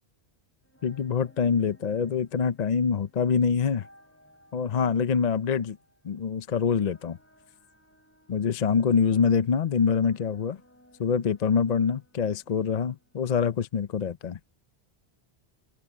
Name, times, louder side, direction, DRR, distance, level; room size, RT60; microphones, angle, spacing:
sound 1, 0.6-13.6, equal, 10° left, 6.3 m, -61 dB
voice 1, 0.8-3.9 4.5-5.8 6.0-7.2 8.3-10.6 11.0-14.4, left 6 dB, 45° left, 0.7 m, -25 dB
omnidirectional pair, 1.1 m